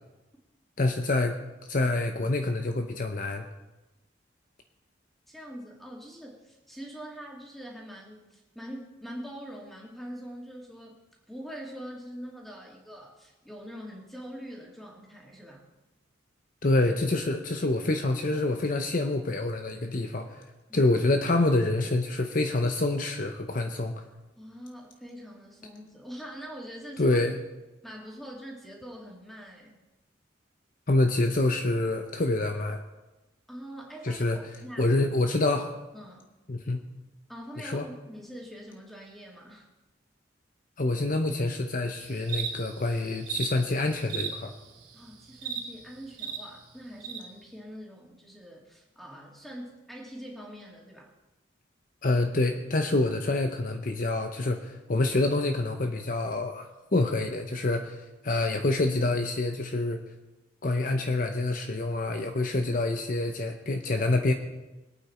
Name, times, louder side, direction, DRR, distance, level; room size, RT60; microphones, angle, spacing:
voice 1, 0.8-1.4 1.7-3.4 16.6-20.4 20.7-24.0 27.0-27.3 30.9-32.8 34.0-34.4 34.8-35.7 36.5-36.8 37.6-37.9 40.8-44.5 52.0-58.0 58.2-60.0 60.6-64.3, left 2 dB, 45° left, 5 dB, 0.8 m, -26 dB
voice 2, 5.3-11.0 11.3-15.6 20.7-21.0 24.4-27.2 27.8-29.8 33.5-34.9 35.9-36.2 37.3-39.7 44.9-51.1, equal, ahead, -2 dB, 2.6 m, -43 dB
sound 1, 42.0-46.4 47.0-47.2, right 7 dB, 60° right, 3.7 m, -36 dB
23.0 x 8.8 x 4.3 m, 1.0 s
head